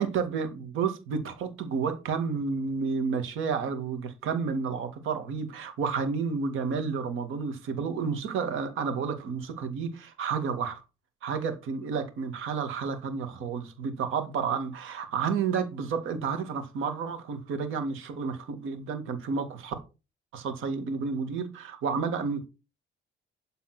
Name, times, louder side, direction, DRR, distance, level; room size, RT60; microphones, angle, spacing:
voice 1, 0.0-10.8 11.2-19.7 20.3-22.4, right 5 dB, 85° right, 2.1 m, -31 dB
12.0 x 4.2 x 6.0 m
cardioid pair, 90°, 20 cm